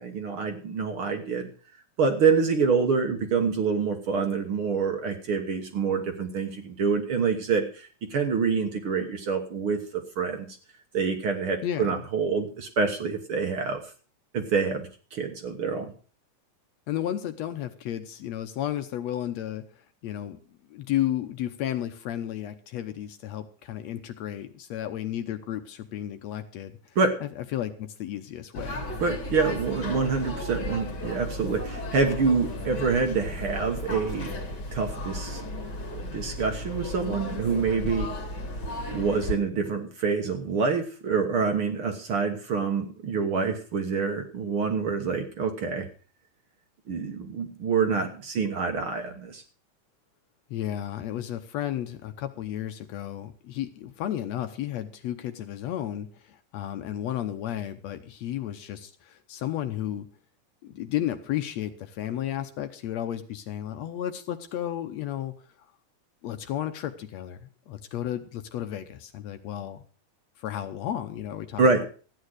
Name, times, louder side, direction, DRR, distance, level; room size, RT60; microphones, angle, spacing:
voice 1, 0.0-1.5 2.0-10.5 10.9-13.8 14.3-15.9 27.0-27.2 29.0-34.3 34.7-35.4 35.9-38.1 38.9-45.9 46.9-49.4 71.6-71.8, right 5 dB, 50° right, 6 dB, 1.9 m, -26 dB
voice 2, 16.9-19.6 20.0-28.9 50.5-60.1 60.6-65.3 66.2-69.8 70.4-71.8, left 11 dB, 70° left, 8 dB, 1.9 m, -33 dB
sound 1, 28.5-39.4, left 1 dB, 35° left, 2.4 m, -35 dB
14.0 x 9.4 x 6.4 m, 0.39 s
omnidirectional pair, 3.5 m